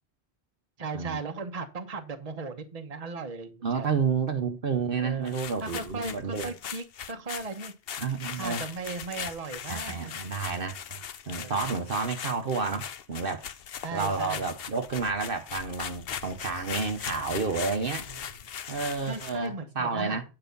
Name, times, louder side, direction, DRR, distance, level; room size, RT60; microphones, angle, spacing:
voice 1, 0.8-3.9 4.9-7.7 8.3-10.1 11.4-11.8 13.8-14.4 18.1-18.3 19.1-20.2, right 4 dB, 35° right, 1.2 m, -37 dB
voice 2, 3.6-6.5 8.0-8.6 9.7-11.0 11.3-13.5 13.9-18.1 18.7-20.2, right 5 dB, 55° right, 1.2 m, -30 dB
sound 1, 5.3-19.5, left 8 dB, 65° left, 0.9 m, -39 dB
9.4 x 5.6 x 5.3 m
omnidirectional pair, 1.1 m